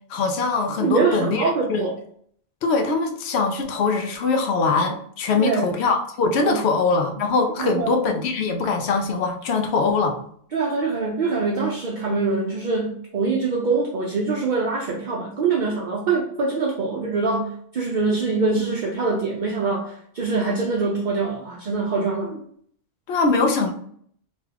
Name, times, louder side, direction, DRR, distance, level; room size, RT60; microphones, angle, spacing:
voice 1, 0.1-1.8 2.6-10.2 23.1-23.7, left 4 dB, 90° left, 4 dB, 0.8 m, -22 dB
voice 2, 0.8-2.0 5.4-5.7 6.4-6.6 7.6-7.9 10.5-22.3, right 4 dB, 55° right, -1 dB, 0.6 m, -24 dB
3.0 x 2.3 x 3.2 m, 0.62 s
omnidirectional pair, 1.1 m